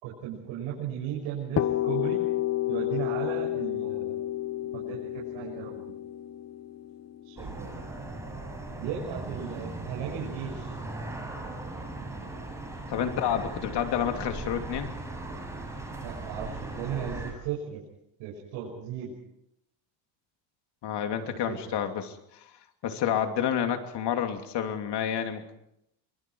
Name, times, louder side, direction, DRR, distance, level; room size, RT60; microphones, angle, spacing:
voice 1, 0.0-2.3 2.7-4.2 4.7-5.9 7.2-7.9 8.8-10.7 16.0-17.8 18.2-19.1 21.1-21.8, right 8 dB, 90° right, -3 dB, 6.3 m, -36 dB
sound 1, 1.6-9.3, left 13 dB, 35° left, 1.1 m, -31 dB
sound 2, 7.4-17.3, right 2 dB, 5° right, 7.7 m, -38 dB
voice 2, 12.9-14.9 20.8-22.4 22.8-25.6, left 9 dB, 60° left, 5 dB, 3.0 m, -29 dB
27.5 x 25.0 x 4.7 m, 0.78 s
cardioid pair, 130°, 46 cm